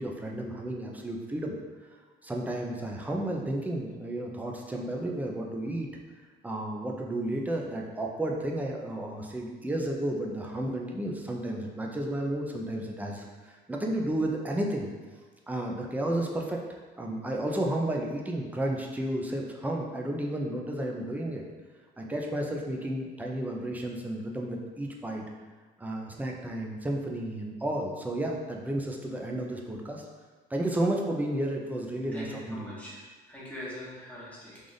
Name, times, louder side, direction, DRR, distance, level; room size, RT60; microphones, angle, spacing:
voice 1, 0.0-1.6 1.8-1.9 2.2-5.9 6.4-14.9 15.5-16.6 17.0-21.4 22.0-25.2 25.8-30.1 30.5-32.8, right 1 dB, 10° right, 0 dB, 0.5 m, -32 dB
voice 2, 32.1-33.0 33.3-34.6, left 1 dB, 10° left, -8 dB, 1.3 m, -42 dB
3.3 x 2.5 x 3.9 m, 1.4 s
cardioid pair, 110°, 17 cm